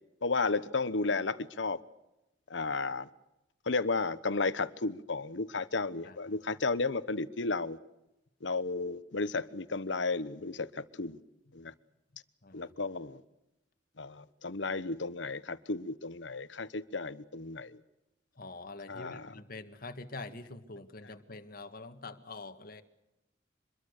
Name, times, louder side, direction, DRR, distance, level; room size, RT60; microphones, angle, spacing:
voice 1, 0.2-1.8 2.5-3.1 3.7-7.8 8.4-11.2 11.5-11.7 12.5-13.2 14.0-17.7 18.9-19.4 21.0-21.1, left 3 dB, 75° left, 1.1 m, -33 dB
voice 2, 6.0-6.4 11.5-11.7 12.4-12.7 18.4-22.8, left 3 dB, 55° left, 1.9 m, -45 dB
25.5 x 22.0 x 6.7 m
head